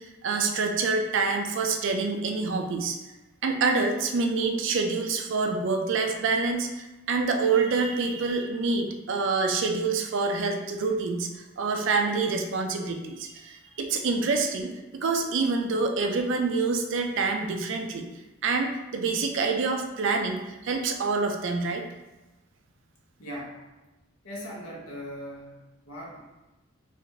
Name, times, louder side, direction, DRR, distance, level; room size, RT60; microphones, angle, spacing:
voice 1, 0.0-3.0 3.4-18.1 18.4-21.8, right 4 dB, 60° right, 4 dB, 0.4 m, -27 dB
voice 2, 23.2-23.6 24.2-26.2, equal, 85° left, -4 dB, 1.1 m, -40 dB
4.0 x 2.5 x 3.2 m, 1.1 s
head